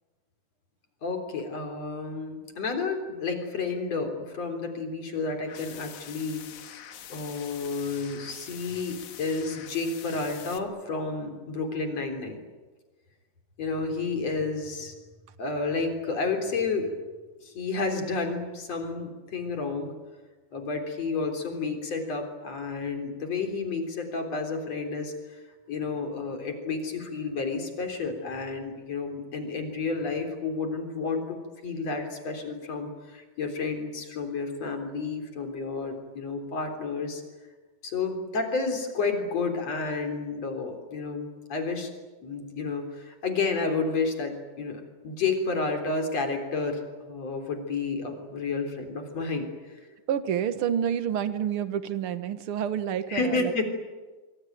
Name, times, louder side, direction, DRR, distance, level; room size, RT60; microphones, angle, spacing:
voice 1, 1.0-6.4 7.1-12.4 13.6-15.0 15.4-16.9 17.4-19.9 20.5-25.4 25.7-37.2 37.8-41.9 42.2-49.5 53.1-53.6, left 4 dB, 55° left, 5 dB, 4.7 m, -31 dB
sound 1, 5.4-10.6, left 9 dB, 70° left, 2.9 m, -45 dB
voice 2, 50.1-53.6, right 9 dB, 55° right, 11 dB, 1.8 m, -28 dB
24.5 x 24.5 x 9.3 m, 1.3 s
omnidirectional pair, 3.7 m